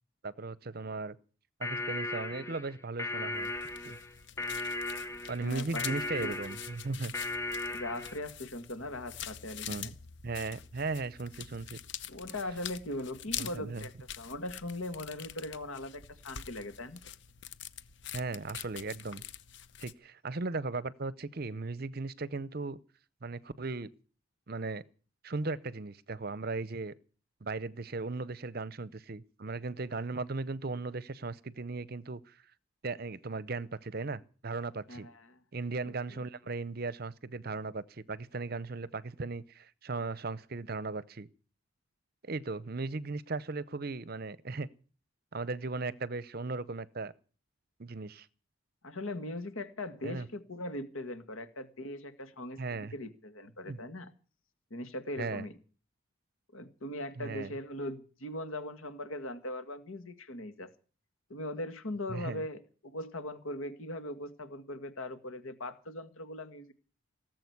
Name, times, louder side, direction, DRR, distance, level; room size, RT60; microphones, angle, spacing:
voice 1, 0.2-1.2 1.6-3.5 3.8-4.0 5.3-7.1 9.7-9.9 10.2-11.8 13.4-13.9 18.1-19.2 19.8-22.8 23.2-23.9 24.5-24.8 25.2-26.9 27.4-32.4 32.8-35.1 35.5-41.3 42.2-44.7 45.3-47.1 47.8-48.3 50.0-50.3 52.6-52.9 53.7-53.8 55.2-55.5 57.2-57.5 62.1-62.5, right 3 dB, 45° right, 0.7 m, -37 dB
sound 1, 1.6-8.2, left 2 dB, 15° left, 0.7 m, -37 dB
Magizine Pages, 3.3-19.9, left 10 dB, 55° left, 0.9 m, -45 dB
voice 2, 5.4-6.3 7.7-9.9 12.1-13.9 14.2-17.0 34.9-35.4 36.1-36.2 48.8-52.6 52.9-54.1 54.7-55.5 56.5-60.7 61.3-66.7, left 1 dB, 75° left, 2.0 m, -40 dB
18.5 x 7.7 x 9.5 m
head